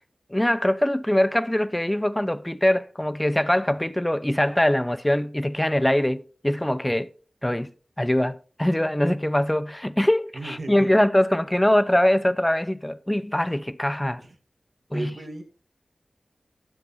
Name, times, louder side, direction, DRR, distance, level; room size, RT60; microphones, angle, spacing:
voice 1, 0.3-7.1 7.4-7.7 8.0-14.2 14.9-15.1, left 1 dB, 10° left, 0.6 m, -22 dB
voice 2, 10.3-10.9 14.2-14.4 14.9-15.4, right 2 dB, 60° right, 2.0 m, -35 dB
11.5 x 6.6 x 4.2 m
wide cardioid pair, 75°, 0 cm